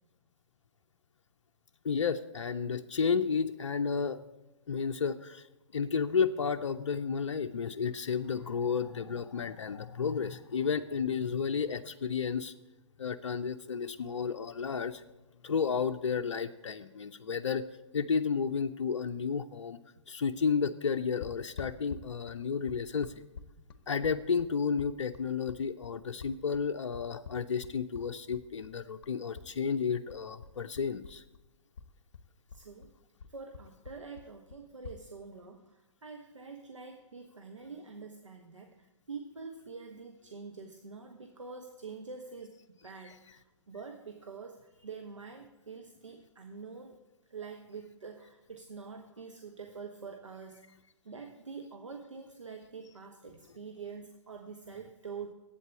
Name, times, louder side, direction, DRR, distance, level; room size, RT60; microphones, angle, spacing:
voice 1, 1.8-4.2 4.7-5.5 5.7-12.5 13.0-15.0 15.4-17.6 17.9-19.8 20.1-23.1 23.9-31.2, left 6 dB, 65° left, 6 dB, 0.5 m, -32 dB
sound 1, 21.2-29.5 29.8-31.5 31.7-35.0, left 6 dB, 50° left, 0.9 m, -47 dB
voice 2, 32.5-32.9 33.3-47.0 47.3-50.7 51.0-55.3, right 5 dB, 80° right, 4 dB, 1.1 m, -46 dB
8.4 x 8.0 x 8.4 m, 1.1 s
figure-of-eight pair, 125°, 16 cm